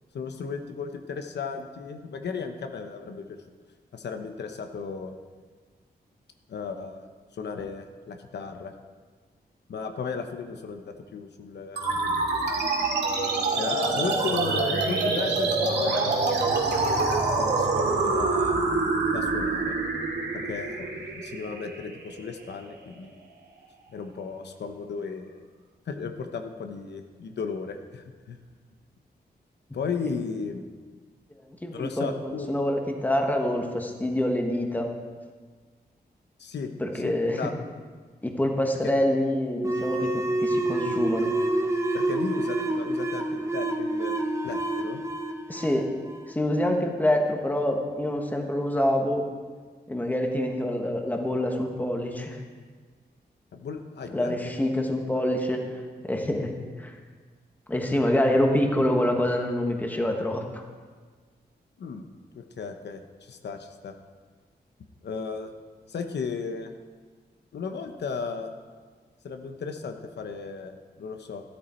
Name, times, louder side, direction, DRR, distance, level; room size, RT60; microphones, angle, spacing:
voice 1, 0.1-3.4 3.9-5.1 6.5-7.0 7.3-8.7 9.7-12.5 13.6-16.2 16.5-18.6 19.1-19.8 20.3-23.2 23.9-25.5 25.9-28.4 29.7-30.6 31.7-32.6 36.4-36.7 37.0-37.5 41.9-44.1 44.4-45.0 53.5-54.3 55.1-55.2 61.8-62.0 62.3-63.9 65.0-65.5 65.9-66.7 67.5-68.5 69.2-71.4, left 5 dB, 90° left, 6 dB, 1.0 m, -35 dB
sound 1, 11.8-22.7, right 3 dB, 85° right, 2.2 m, -26 dB
voice 2, 31.5-34.9 36.8-37.5 38.2-41.3 45.5-45.9 46.3-49.3 49.9-52.4 54.1-55.8 56.1-56.5 56.8-56.9 57.7-60.6, left 1 dB, 10° left, 2 dB, 1.3 m, -26 dB
sound 2, 39.6-46.8, right 2 dB, 15° right, 0.9 m, -28 dB
13.5 x 13.0 x 4.4 m, 1.5 s
wide cardioid pair, 165°, 17 cm